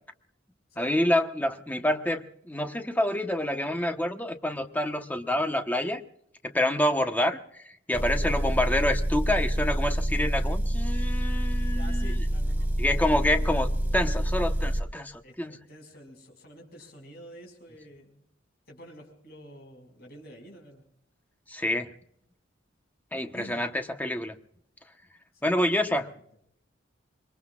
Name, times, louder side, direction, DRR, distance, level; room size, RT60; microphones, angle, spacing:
voice 1, 0.8-6.0 6.4-7.6 7.9-12.2 12.8-13.7 13.9-15.6 21.5-21.9 23.1-24.3 25.4-26.1, left 1 dB, 10° left, 6 dB, 1.1 m, -27 dB
voice 2, 7.9-8.4 11.7-12.9 13.2-14.0 15.2-18.3 18.7-20.8 23.3-23.7 25.3-25.5 26.1-26.2, equal, 55° left, 1 dB, 5.6 m, -48 dB
Motor vehicle (road) / Engine, 7.9-14.8, right 1 dB, 10° right, 2.1 m, -27 dB
26.5 x 21.5 x 2.4 m, 0.71 s
head